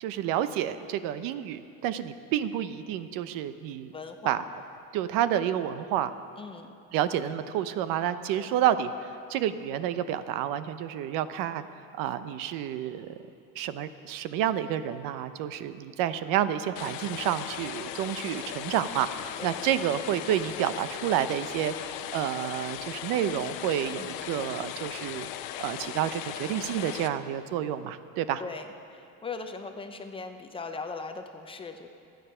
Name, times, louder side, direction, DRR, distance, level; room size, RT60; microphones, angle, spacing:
voice 1, 0.0-3.9 4.2-4.4 4.9-6.1 6.9-11.6 12.0-13.1 13.5-25.3 25.6-28.4, right 10 dB, 75° right, 12 dB, 0.8 m, -29 dB
voice 2, 3.9-4.4 6.4-6.8 8.4-8.5 19.4-19.6 24.0-24.4 28.4-28.7 28.9-31.9, left 4 dB, 15° left, 6 dB, 0.6 m, -39 dB
sound 1, 16.8-27.1, left 11 dB, 90° left, 0.9 m, -38 dB
26.0 x 9.3 x 5.6 m, 2.6 s
cardioid pair, 170°, 34 cm